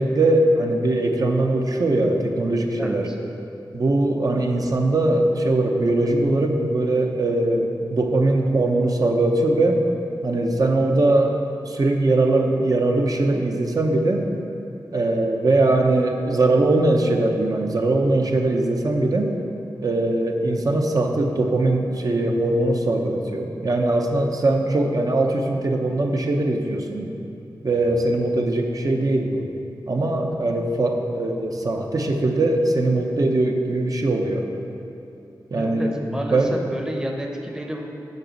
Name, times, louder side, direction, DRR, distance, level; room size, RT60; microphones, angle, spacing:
voice 1, 0.0-3.1 3.7-9.8 10.2-14.3 14.9-19.3 19.8-27.1 27.6-29.4 29.9-34.5 35.5-36.0 36.3-36.6, right 2 dB, 50° right, 2 dB, 0.8 m, -21 dB
voice 2, 2.8-3.2 35.5-37.8, equal, 10° right, 1 dB, 0.8 m, -30 dB
6.6 x 5.1 x 6.9 m, 2.7 s
wide cardioid pair, 95°, 8 cm